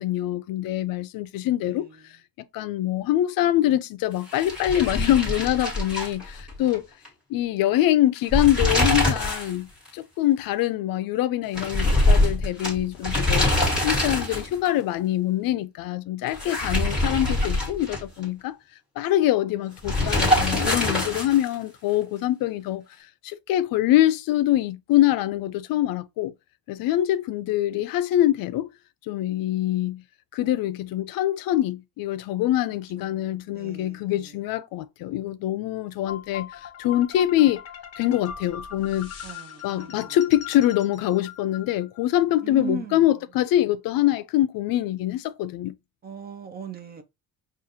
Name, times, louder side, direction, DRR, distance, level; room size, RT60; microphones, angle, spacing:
voice 1, 0.0-1.9 2.5-6.8 7.3-13.5 13.8-18.6 19.0-22.8 23.2-26.3 26.7-28.7 29.1-30.0 30.3-37.6 38.0-39.1 39.6-45.7, left 13 dB, 70° left, 0.5 m, -24 dB
voice 2, 1.6-2.0 33.0-34.3 39.2-40.2 42.4-43.1 46.0-47.0, right 3 dB, 25° right, 0.5 m, -38 dB
sound 1, 4.3-6.8 7.0-7.1 8.1-9.5 9.8-9.9 11.5-14.7 16.3-18.2 19.8-21.5, left 1 dB, ahead, 1.6 m, -24 dB
sound 2, 36.1-42.2, left 8 dB, 40° left, 0.9 m, -40 dB
6.1 x 2.4 x 2.7 m
cardioid pair, 180°, 36 cm